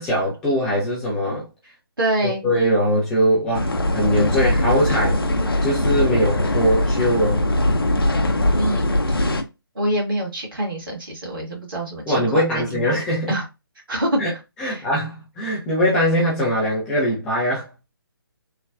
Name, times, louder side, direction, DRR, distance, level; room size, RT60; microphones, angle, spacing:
voice 1, 0.0-1.4 2.2-5.2 5.6-7.5 12.1-13.3 14.2-14.3 14.6-17.7, equal, 5° left, 0.4 m, -21 dB
voice 2, 1.6-2.4 8.6-8.9 9.7-12.9 13.3-13.4 13.9-14.9, right 1 dB, 65° right, 1.6 m, -26 dB
sound 1, 3.5-9.4, left 1 dB, 65° left, 0.6 m, -21 dB
3.3 x 2.2 x 2.4 m
figure-of-eight pair, 140°, 13 cm